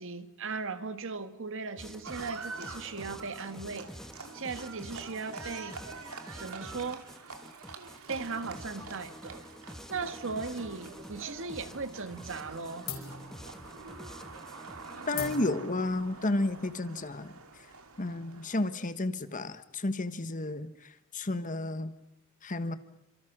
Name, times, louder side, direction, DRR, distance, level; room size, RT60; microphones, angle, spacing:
voice 1, 0.0-3.9 4.3-5.8 6.4-7.0 8.1-9.4 9.9-12.9, right 4 dB, 65° right, 1.6 m, -37 dB
sound 1, 1.8-15.4, equal, ahead, 1.4 m, -48 dB
Livestock farm animals working animals, 2.0-18.8, right 4 dB, 80° right, 2.9 m, -46 dB
sound 2, 11.0-11.8 12.1-12.5 12.8-18.0, left 6 dB, 70° left, 4.9 m, -45 dB
voice 2, 15.1-17.3 18.0-21.9 22.4-22.8, left 2 dB, 35° left, 1.3 m, -32 dB
29.5 x 26.0 x 6.1 m
head